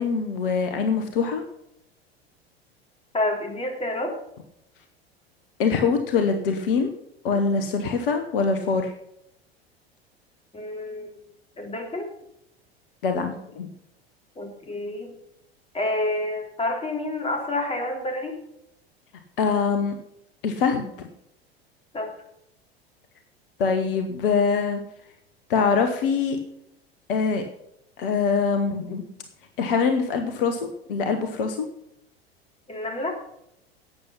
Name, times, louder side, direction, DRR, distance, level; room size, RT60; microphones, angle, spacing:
voice 1, 0.0-1.4 5.6-6.9 7.2-8.9 13.0-13.7 19.4-20.0 20.4-21.1 23.6-24.8 25.5-26.4 27.1-27.4 28.0-29.0 29.6-31.7, left 5 dB, 60° left, 6 dB, 1.3 m, -23 dB
voice 2, 3.1-4.1 10.5-11.2 11.6-12.1 14.4-15.1 15.7-18.4 21.9-22.1 32.7-33.1, left 2 dB, 20° left, 2 dB, 3.5 m, -28 dB
12.0 x 8.7 x 5.7 m, 0.78 s
figure-of-eight pair, 80°, 31 cm